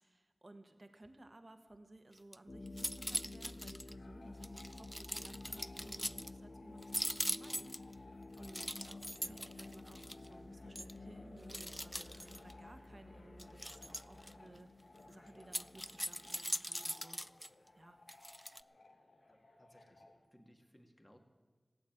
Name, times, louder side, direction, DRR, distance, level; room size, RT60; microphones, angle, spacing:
voice 1, 0.0-8.7 9.3-14.7 15.1-17.2 17.7-18.0, right 2 dB, 45° right, 7 dB, 1.4 m, -58 dB
sound 1, 2.1-2.4 2.7-3.9 4.4-6.3 6.8-7.9 8.4-10.3 10.8-10.9 11.5-12.5 13.4-14.3 15.4-17.5 18.1-18.6, equal, ahead, 0.3 m, -41 dB
sound 2, 2.5-16.8, left 2 dB, 55° left, 0.6 m, -52 dB
sound 3, 3.9-20.3, left 2 dB, 80° left, 1.4 m, -61 dB
voice 2, 8.8-9.4 19.3-20.1 20.3-21.2, equal, 15° left, 4 dB, 2.0 m, -63 dB
15.5 x 8.7 x 9.1 m, 1.4 s
wide cardioid pair, 55°, 0 cm